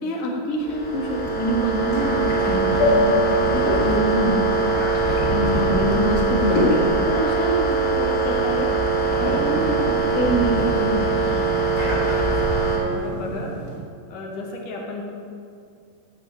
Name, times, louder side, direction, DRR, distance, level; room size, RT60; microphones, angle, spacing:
voice 1, 0.0-4.4 5.3-8.7 9.2-11.3, equal, 85° left, -2 dB, 0.7 m, -26 dB
sound 1, 0.6-12.8, right 3 dB, 15° left, 2.5 m, -22 dB
sound 2, 0.9-13.8, left 1 dB, 35° left, 2.1 m, -32 dB
voice 2, 5.0-5.6 11.8-12.3 12.9-13.6 14.1-15.0, left 3 dB, 60° left, 0 dB, 2.5 m, -35 dB
sound 3, 8.6-13.9, right 7 dB, 75° right, 2.3 m, -34 dB
12.0 x 5.8 x 8.8 m, 2.3 s
omnidirectional pair, 5.0 m